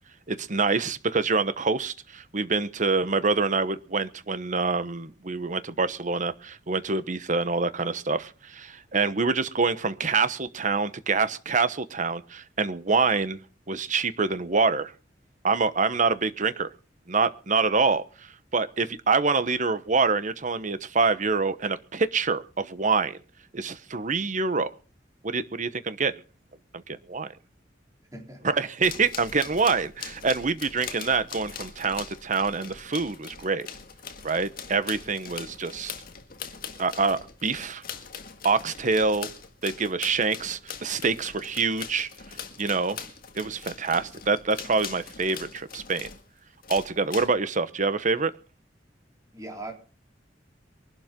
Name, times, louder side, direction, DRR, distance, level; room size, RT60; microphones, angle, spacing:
voice 1, 0.3-13.4 13.7-14.9 15.4-16.7 17.1-18.0 18.5-23.2 23.5-24.7 25.2-26.1 26.7-27.3 28.5-33.7 34.2-35.9 36.8-37.8 38.4-39.3 39.6-42.1 42.6-43.0 43.3-46.1 46.7-48.3, right 4 dB, 45° right, 1.0 m, -26 dB
voice 2, 28.1-28.5 49.3-49.7, right 2 dB, 20° right, 3.7 m, -39 dB
sound 1, 28.8-46.3 46.6-47.3, left 7 dB, 55° left, 1.8 m, -41 dB
23.0 x 12.0 x 3.8 m
head